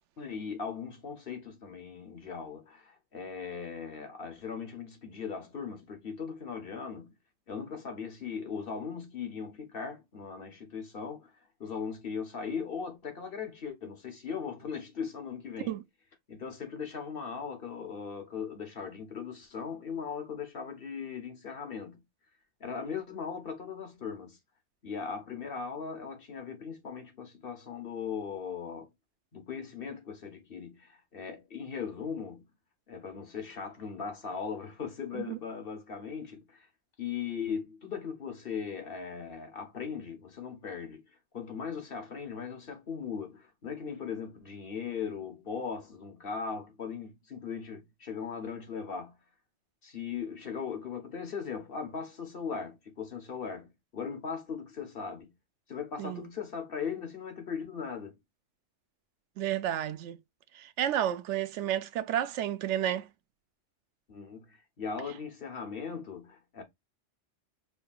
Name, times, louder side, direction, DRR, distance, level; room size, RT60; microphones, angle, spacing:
voice 1, 0.2-7.1 7.5-11.3 11.6-15.8 16.3-22.0 22.6-24.4 24.8-28.9 29.3-32.4 32.9-36.7 37.0-41.0 41.3-49.2 49.8-55.3 55.7-58.2 64.1-66.6, left 6 dB, 55° left, 1.3 m, -39 dB
voice 2, 59.4-60.2 60.5-63.1, right 11 dB, 90° right, 0.9 m, -31 dB
5.2 x 2.8 x 2.3 m
omnidirectional pair, 1.2 m